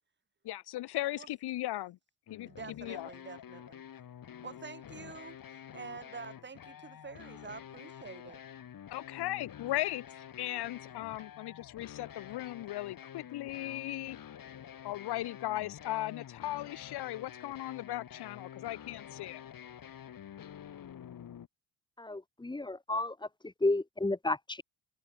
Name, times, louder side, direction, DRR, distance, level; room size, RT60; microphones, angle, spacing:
voice 1, 0.4-2.0 2.3-2.5 2.8-3.1 8.9-14.2 14.8-19.4, left 15 dB, 75° left, 2.7 m, -37 dB
sound 1, 2.3-21.5, left 9 dB, 55° left, 6.8 m, -49 dB
voice 2, 2.5-3.8 4.4-5.4 5.7-8.4, right 5 dB, 25° right, 2.3 m, -47 dB
voice 3, 22.0-24.6, left 2 dB, 10° left, 1.2 m, -32 dB
supercardioid pair, 80°, 40 cm